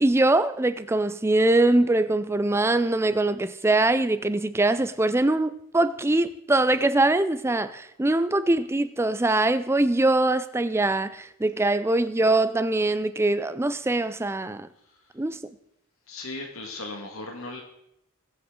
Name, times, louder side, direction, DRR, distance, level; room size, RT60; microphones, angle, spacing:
voice 1, 0.0-14.7 15.2-15.4, right 2 dB, 10° right, 0.4 m, -23 dB
voice 2, 16.1-17.6, left 2 dB, 75° left, 1.8 m, -36 dB
21.0 x 7.8 x 3.8 m
head